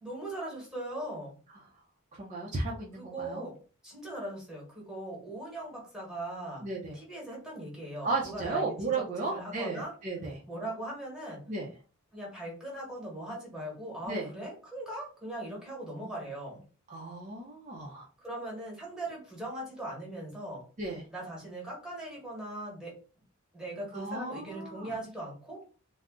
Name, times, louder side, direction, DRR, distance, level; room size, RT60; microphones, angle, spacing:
voice 1, 0.0-1.4 2.9-6.6 6.9-9.9 10.5-11.4 12.1-16.6 18.2-20.7 21.1-23.0 23.5-25.6, right 1 dB, 5° right, -3 dB, 1.1 m, -40 dB
voice 2, 2.2-3.5 6.6-7.0 8.0-10.4 11.5-11.7 14.1-14.3 16.9-18.1 20.8-21.0 23.9-24.9, right 3 dB, 35° right, -3 dB, 0.5 m, -34 dB
2.4 x 2.0 x 3.5 m, 0.37 s
head